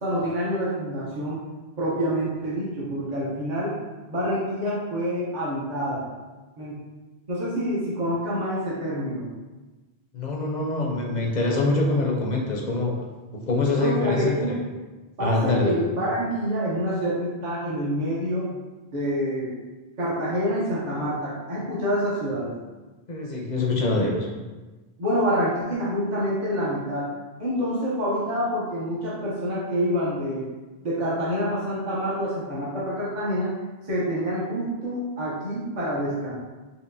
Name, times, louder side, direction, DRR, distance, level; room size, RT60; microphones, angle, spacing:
voice 1, 0.0-1.4 1.8-3.8 4.1-6.1 6.6-6.8 7.3-9.3 13.8-14.5 15.2-18.5 18.9-19.6 20.0-22.5 25.0-27.1 27.4-30.5 30.8-33.6 33.9-36.3, equal, 45° right, -8 dB, 0.9 m, -27 dB
voice 2, 10.1-13.0 13.5-14.6 15.2-15.8 23.1-24.3, left 2 dB, 55° left, -1 dB, 0.6 m, -24 dB
4.6 x 2.7 x 2.6 m, 1.2 s
omnidirectional pair, 1.1 m